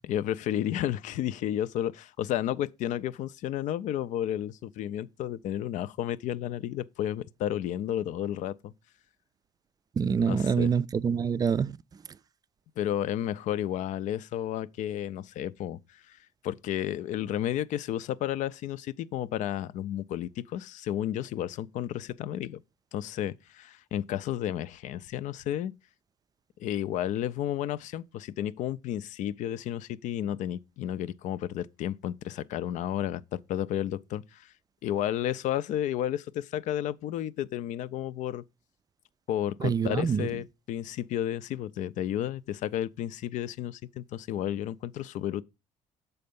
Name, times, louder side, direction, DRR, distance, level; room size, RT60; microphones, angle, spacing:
voice 1, 0.0-8.7 10.2-10.7 12.8-15.8 16.1-16.2 16.4-22.6 22.9-25.7 26.6-34.5 34.8-38.4 39.3-45.4, left 11 dB, 65° left, 0.4 m, -32 dB
voice 2, 10.0-11.7 39.6-40.3, right 6 dB, 30° right, 0.3 m, -26 dB
6.8 x 4.2 x 5.2 m
supercardioid pair, 80°, 14 cm